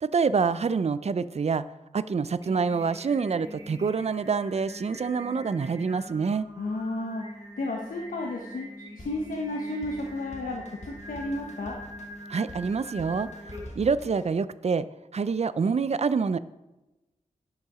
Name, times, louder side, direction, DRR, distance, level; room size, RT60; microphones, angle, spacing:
voice 1, 0.0-1.7 1.9-6.5 12.3-13.3 13.8-14.9 15.1-16.4, right 5 dB, 50° right, 15 dB, 0.4 m, -26 dB
Singing, 2.2-13.9, equal, 25° right, 2.8 m, -44 dB
voice 2, 6.6-11.8, left 2 dB, 90° left, 0 dB, 1.0 m, -33 dB
Drum kit, 9.0-14.3, left 1 dB, 55° left, 1.5 m, -46 dB
10.5 x 5.8 x 4.9 m, 1.0 s
wide cardioid pair, 55°, 14 cm